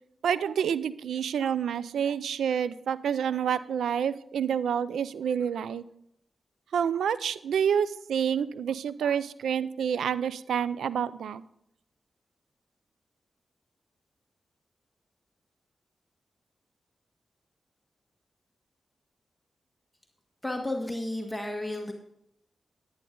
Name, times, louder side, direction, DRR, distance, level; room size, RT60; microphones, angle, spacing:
voice 1, 0.2-5.8 6.7-11.4, right 8 dB, 90° right, 17 dB, 0.4 m, -28 dB
voice 2, 20.4-21.9, left 1 dB, 10° left, 2 dB, 1.7 m, -32 dB
10.5 x 10.5 x 3.8 m, 0.75 s
cardioid pair, 45°, 0 cm